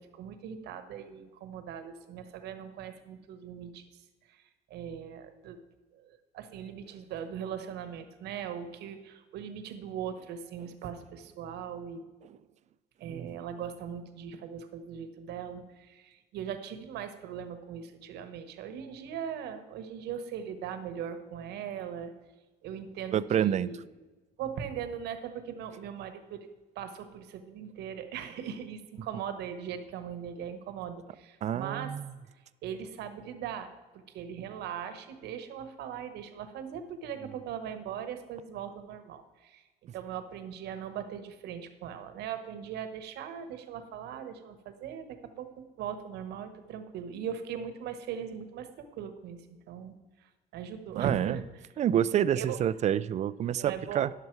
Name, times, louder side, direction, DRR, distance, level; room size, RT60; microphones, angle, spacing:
voice 1, 0.0-4.4 4.7-5.6 5.9-12.1 13.0-22.1 22.6-23.8 24.4-26.5 26.7-31.9 32.2-32.3 32.6-39.6 39.9-49.4 49.7-51.4 52.3-52.6 53.6-54.1, right 8 dB, 80° right, 9 dB, 1.1 m, -40 dB
voice 2, 23.1-23.7 31.4-32.0 50.9-51.4 51.8-54.1, right 10 dB, 45° right, 17 dB, 0.4 m, -28 dB
11.0 x 6.7 x 4.6 m, 1.2 s
cardioid pair, 110°, 17 cm